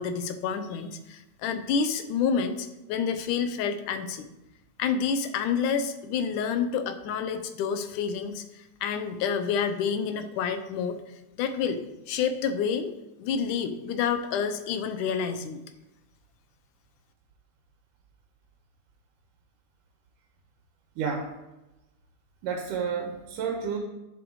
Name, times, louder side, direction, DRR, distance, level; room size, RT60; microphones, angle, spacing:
voice 1, 0.0-4.3 4.8-11.0 11.4-11.8 12.1-12.9 13.2-15.6, left 6 dB, 80° left, 9 dB, 2.4 m, -28 dB
voice 2, 21.0-21.3 22.4-23.8, right 6 dB, 90° right, 2 dB, 2.7 m, -30 dB
11.5 x 7.3 x 4.8 m, 0.98 s
omnidirectional pair, 3.6 m